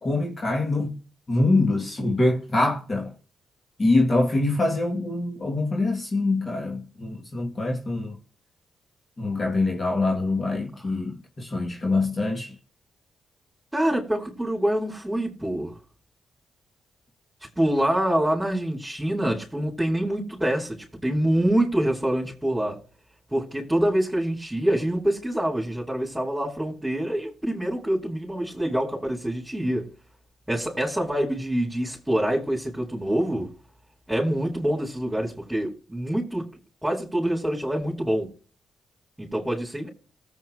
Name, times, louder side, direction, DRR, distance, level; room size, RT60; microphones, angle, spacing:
voice 1, 0.0-1.0 1.3-3.1 3.8-8.2 9.2-12.6, left 2 dB, 40° left, 2.5 m, -24 dB
voice 2, 13.7-15.7 17.6-22.8 23.3-29.9 30.5-33.5 34.1-36.5 36.8-38.3 39.2-39.9, right 1 dB, 10° right, 4.7 m, -25 dB
20.0 x 8.3 x 3.1 m
supercardioid pair, 50°, 0 cm